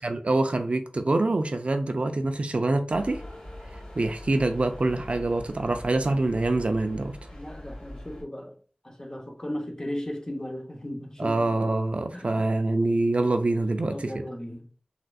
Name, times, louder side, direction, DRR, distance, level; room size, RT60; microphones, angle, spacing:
voice 1, 0.0-3.2 3.9-7.2 11.2-14.1, right 2 dB, 65° right, 0.4 m, -25 dB
sound 1, 2.9-8.2, left 1 dB, 65° left, 1.7 m, -42 dB
voice 2, 7.3-8.6 8.8-11.6 12.1-12.5 13.9-14.7, left 1 dB, 30° left, 0.8 m, -36 dB
4.0 x 2.4 x 2.4 m
wide cardioid pair, 45°, 2 cm